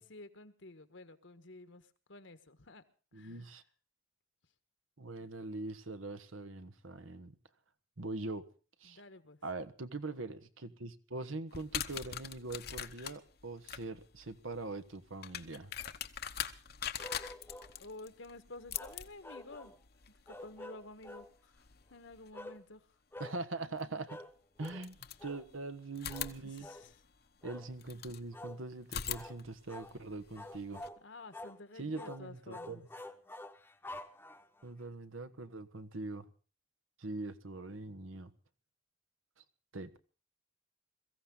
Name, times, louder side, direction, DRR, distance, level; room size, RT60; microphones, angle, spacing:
voice 1, 0.0-1.8 2.1-2.8 3.1-3.4 8.8-9.4 17.8-19.7 20.2-21.6 21.9-22.8 26.4-26.9 31.0-32.8, left 2 dB, 70° left, 1.5 m, -51 dB
voice 2, 3.1-3.6 5.0-7.3 8.0-8.4 8.8-9.0 9.4-15.7 23.2-24.2 24.6-25.0 25.2-26.7 27.4-30.8 31.7-32.8 34.6-36.3 37.0-38.3 39.7-40.0, right 2 dB, 85° right, 1.4 m, -42 dB
sound 1, 11.5-22.3 23.8-23.9 24.6-25.6 26.0-28.2 28.8-30.9, left 9 dB, 50° left, 0.9 m, -44 dB
sound 2, 17.0-17.7 18.7-19.8 20.3-21.3 22.3-22.6 23.1-23.4 24.1-24.3 24.6-24.8 25.2-25.4 26.1-26.3 26.6-26.9 27.4-27.7 28.3-28.6 29.1-29.4 29.7-29.9 30.4-31.0 31.3-31.6 32.0-32.2 32.5-34.6, left 1 dB, 10° left, 1.0 m, -48 dB
22.5 x 15.0 x 3.9 m
head